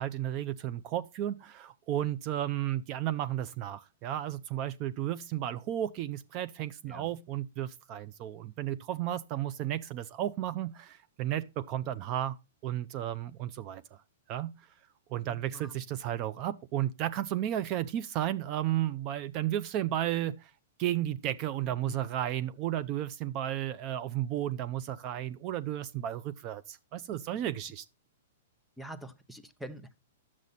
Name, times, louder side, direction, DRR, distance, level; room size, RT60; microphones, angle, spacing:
voice 1, 0.0-12.4 12.6-13.8 14.3-14.5 15.1-20.5 20.8-27.8, right 12 dB, 40° right, 0.5 m, -33 dB
voice 2, 6.9-7.2 15.2-15.8 21.9-22.0 28.8-30.0, right 1 dB, ahead, 0.8 m, -45 dB
10.5 x 7.4 x 4.1 m
hypercardioid pair, 125°, 0 cm